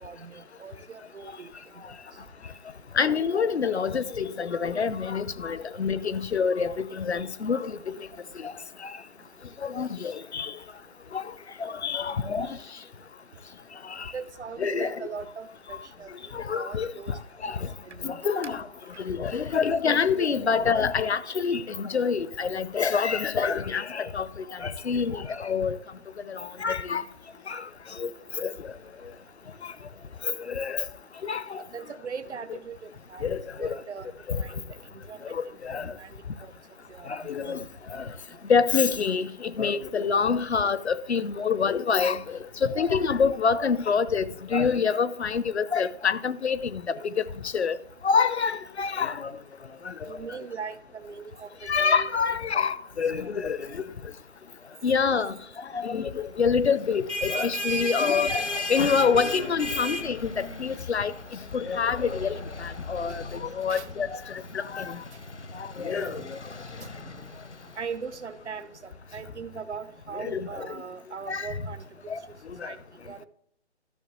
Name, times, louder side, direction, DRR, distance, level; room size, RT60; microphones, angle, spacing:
voice 1, 0.0-1.5 14.1-16.1 16.5-17.2 17.8-18.3 19.5-19.6 31.7-33.3 33.6-34.1 34.4-34.6 35.1-35.4 35.7-36.1 36.4-36.5 36.9-37.6 50.1-51.5 51.8-52.7 53.2-53.3 63.7-63.9 65.8-66.2 66.8-67.2 67.8-71.8 72.6-72.8 73.1-73.3, right 6 dB, 75° right, 0.7 m, -40 dB
voice 2, 3.0-7.8 8.4-8.5 8.8-8.9 9.6-10.5 11.1-11.2 11.6-12.6 13.9-14.1 14.6-15.1 16.3-16.9 17.4-17.7 18.0-18.6 19.0-24.3 24.6-25.8 26.3-27.0 27.5-27.6 28.0-28.1 28.4-28.5 30.2-30.8 31.2-31.6 33.2-33.8 34.3-34.4 35.3-35.9 37.1-37.6 37.9-38.1 38.5-47.2 47.5-47.8 48.0-49.3 49.8-49.9 51.7-53.8 54.8-55.3 55.7-61.1 61.5-64.2 64.5-65.0 65.6-66.4 70.1-70.7 71.3-71.5 72.1-72.2 72.6-72.7, left 6 dB, 70° left, 0.7 m, -26 dB
sound 1, 56.8-68.2, left 1 dB, 85° left, 1.0 m, -36 dB
13.0 x 6.8 x 3.0 m
figure-of-eight pair, 145°, 34 cm